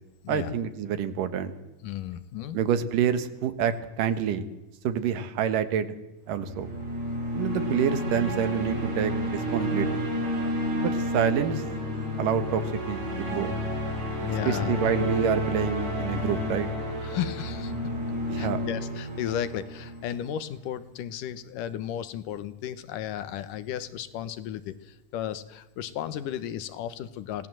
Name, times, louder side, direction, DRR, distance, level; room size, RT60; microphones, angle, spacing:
voice 1, 0.3-1.5 2.5-4.4 4.8-6.0 6.3-6.7 7.3-10.1 10.7-11.6 12.2-13.5 14.5-16.7 18.3-18.6, right 8 dB, 90° right, 11 dB, 3.0 m, -27 dB
voice 2, 1.8-2.6 14.2-14.8 17.0-17.7 18.4-27.5, left 10 dB, 85° left, 13 dB, 2.7 m, -34 dB
sound 1, 6.3-20.5, left 1 dB, 60° right, 5.6 m, -31 dB
25.5 x 18.0 x 7.6 m, 1.0 s
omnidirectional pair, 3.7 m